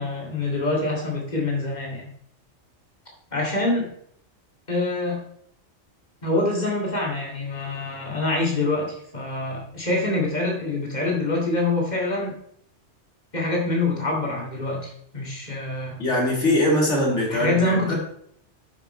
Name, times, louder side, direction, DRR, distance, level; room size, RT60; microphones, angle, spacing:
voice 1, 0.0-2.1 3.3-3.9 4.7-5.3 6.2-12.4 13.3-16.0 17.3-17.9, left 2 dB, 40° left, -2 dB, 2.6 m, -25 dB
voice 2, 16.0-17.8, left 1 dB, 90° left, -2 dB, 3.0 m, -21 dB
9.1 x 6.1 x 4.4 m, 0.67 s
omnidirectional pair, 1.2 m